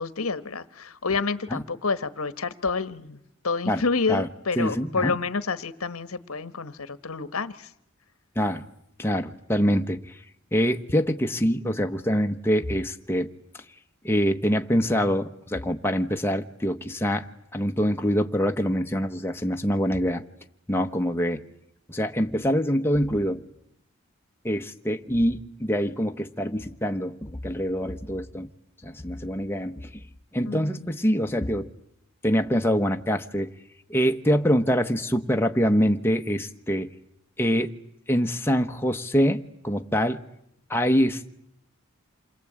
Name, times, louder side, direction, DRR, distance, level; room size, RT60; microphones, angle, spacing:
voice 1, 0.0-3.2 3.4-7.7 30.5-30.9, left 4 dB, 90° left, 1.3 m, -29 dB
voice 2, 4.6-5.1 8.4-8.6 9.0-10.2 10.5-13.3 14.0-17.3 17.5-20.2 20.7-21.4 21.9-23.4 24.4-28.5 28.8-29.9 30.3-31.7 32.2-33.5 33.9-36.9 37.4-37.8 38.1-40.2 40.7-41.3, equal, 10° left, 1.0 m, -25 dB
27.5 x 22.5 x 8.7 m
head